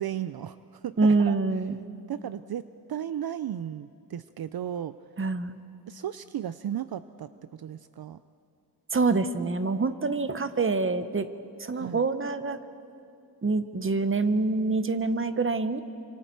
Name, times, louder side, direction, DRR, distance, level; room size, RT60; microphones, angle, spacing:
voice 1, 0.0-1.4 2.1-5.0 5.9-8.2 11.7-12.1, right 10 dB, 65° right, 13 dB, 0.5 m, -35 dB
voice 2, 1.0-1.8 5.2-5.6 8.9-11.3 11.6-12.6 13.4-15.8, right 3 dB, 30° right, 11 dB, 0.9 m, -26 dB
28.0 x 26.0 x 4.6 m, 2.6 s
wide cardioid pair, 105°, 41 cm